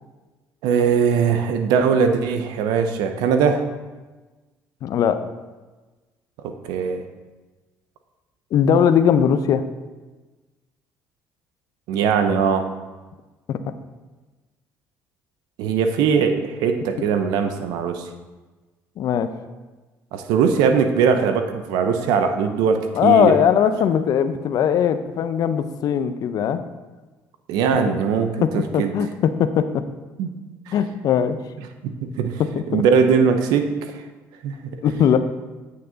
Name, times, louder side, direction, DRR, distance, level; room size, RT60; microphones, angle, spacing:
voice 1, 0.6-3.7 6.4-7.0 11.9-12.7 15.6-18.0 20.1-23.4 27.5-28.9 30.2-30.3 30.7-30.8 31.8-32.4 32.7-34.0 34.4-34.6, right 6 dB, 75° right, 7 dB, 0.8 m, -20 dB
voice 2, 4.8-5.2 8.5-9.6 13.5-13.6 19.0-19.3 22.9-26.6 27.9-28.0 28.4-29.8 30.7-31.4 32.4-32.8 34.8-35.2, left 8 dB, 60° left, 11 dB, 0.6 m, -19 dB
8.6 x 6.5 x 4.0 m, 1.2 s
supercardioid pair, 70°, 7 cm